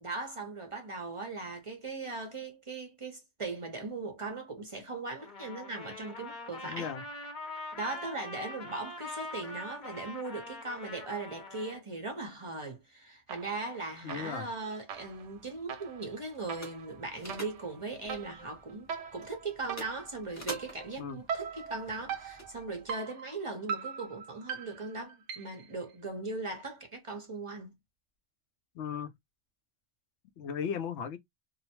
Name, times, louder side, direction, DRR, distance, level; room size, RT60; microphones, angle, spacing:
voice 1, 0.0-6.9 7.8-27.7, right 3 dB, 35° right, 0.6 m, -39 dB
Trumpet, 5.2-11.8, left 2 dB, 45° left, 0.8 m, -43 dB
voice 2, 6.6-7.0 14.0-14.5 21.0-21.2 28.7-29.1 30.4-31.2, left 7 dB, 75° left, 0.8 m, -36 dB
sound 1, 13.3-13.8 14.1-25.7, right 6 dB, 90° right, 0.9 m, -41 dB
sound 2, 14.9-22.9, equal, 20° left, 0.6 m, -50 dB
2.7 x 2.1 x 2.8 m
omnidirectional pair, 1.2 m